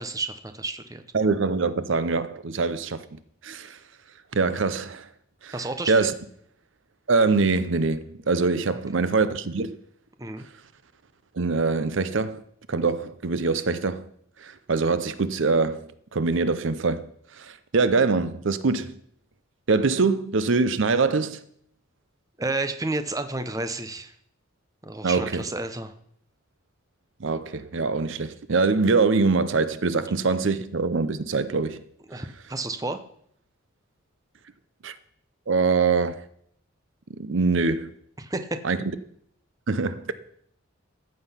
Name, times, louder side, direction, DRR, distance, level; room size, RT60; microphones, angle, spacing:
voice 1, 0.0-1.0 5.5-6.1 8.7-9.0 10.2-10.4 22.4-24.1 24.8-25.9 32.1-33.0 38.2-38.6, right 2 dB, 15° right, 0.7 m, -31 dB
voice 2, 1.1-3.0 3.4-3.8 4.3-5.1 5.4-5.5 5.9-6.1 7.1-9.8 11.4-12.4 12.7-14.0 14.4-17.0 17.4-18.9 19.7-21.4 25.0-25.4 27.2-31.8 34.8-35.0 35.5-36.2 37.2-37.9 38.6-38.8 39.7-40.1, right 4 dB, 60° right, 0.6 m, -23 dB
14.5 x 7.9 x 5.6 m
head